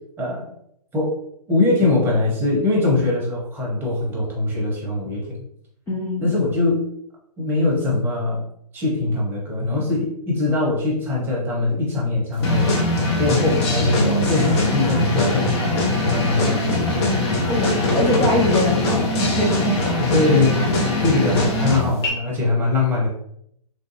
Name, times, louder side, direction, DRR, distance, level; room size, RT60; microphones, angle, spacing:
voice 1, 0.2-0.5 0.9-1.2 1.5-5.4 6.2-6.8 7.4-8.4 8.7-12.7 13.2-18.0 20.1-20.6 21.0-23.1, left 2 dB, 10° right, -3 dB, 0.9 m, -22 dB
voice 2, 5.9-6.3 17.5-19.9, left 1 dB, 10° left, -4 dB, 0.3 m, -23 dB
sound 1, 12.4-22.1, left 2 dB, 40° left, 0.9 m, -21 dB
3.3 x 2.6 x 2.6 m, 0.70 s
figure-of-eight pair, 130°, 20 cm